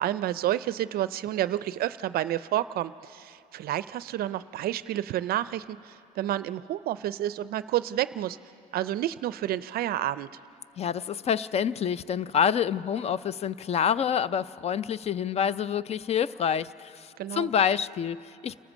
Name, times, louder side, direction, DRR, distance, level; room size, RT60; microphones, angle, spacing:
voice 1, 0.0-8.4 8.7-10.4 17.2-17.5, right 13 dB, 65° right, 15 dB, 0.4 m, -30 dB
voice 2, 10.8-18.6, left 8 dB, 40° left, 18 dB, 0.4 m, -27 dB
29.0 x 13.5 x 7.3 m, 2.7 s
cardioid pair, 110°, 17 cm